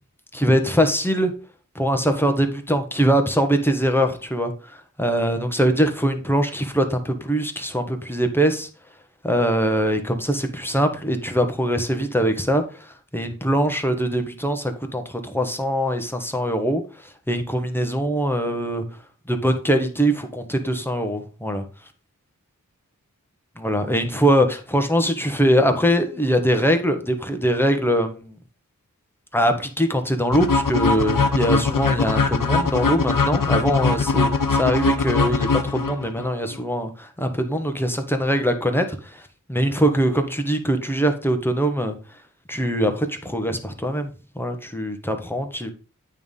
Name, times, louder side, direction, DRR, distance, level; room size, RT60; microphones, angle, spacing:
voice 1, 0.3-1.3 1.7-8.7 9.2-12.6 13.1-16.8 17.3-18.8 19.3-21.6 23.6-28.3 29.3-38.8 39.1-39.2 39.5-42.0 42.5-44.1 44.3-45.7, equal, 5° left, 5 dB, 1.4 m, -22 dB
sound 1, 30.3-36.3, left 4 dB, 75° left, 0.9 m, -21 dB
9.1 x 3.6 x 5.5 m, 0.36 s
wide cardioid pair, 45°, 33 cm